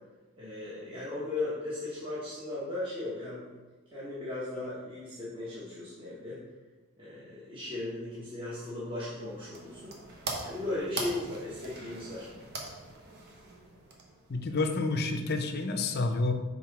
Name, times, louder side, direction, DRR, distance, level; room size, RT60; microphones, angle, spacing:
voice 1, 0.4-3.4 3.9-6.4 7.0-9.9 10.4-12.3, left 2 dB, 25° right, -9 dB, 1.2 m, -37 dB
sound 1, 9.1-14.4, right 3 dB, 50° right, 1.0 m, -42 dB
voice 2, 14.3-16.3, left 3 dB, 45° left, 6 dB, 0.6 m, -29 dB
5.9 x 3.8 x 4.7 m, 1.2 s
head